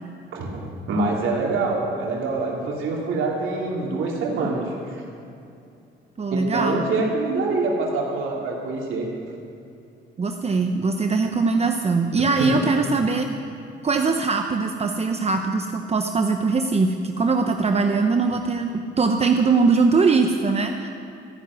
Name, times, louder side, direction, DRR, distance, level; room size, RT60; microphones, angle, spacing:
voice 1, 0.3-5.0 6.3-9.1 12.4-12.6, right 3 dB, 80° right, -2 dB, 2.9 m, -25 dB
voice 2, 6.2-6.8 10.2-13.3 13.8-20.9, right 4 dB, 30° right, 5 dB, 0.8 m, -21 dB
14.0 x 7.3 x 9.5 m, 2.5 s
cardioid pair, 90°, 20 cm